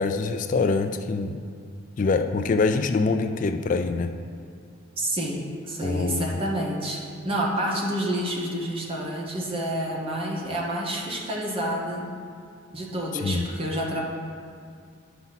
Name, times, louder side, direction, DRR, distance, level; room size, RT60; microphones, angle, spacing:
voice 1, 0.0-1.4 2.0-4.1 5.8-6.3 13.2-13.4, left 4 dB, 40° left, 8 dB, 0.3 m, -24 dB
voice 2, 5.0-12.1 12.7-14.0, right 1 dB, 25° right, -2 dB, 1.1 m, -29 dB
10.0 x 5.6 x 4.1 m, 2.3 s
head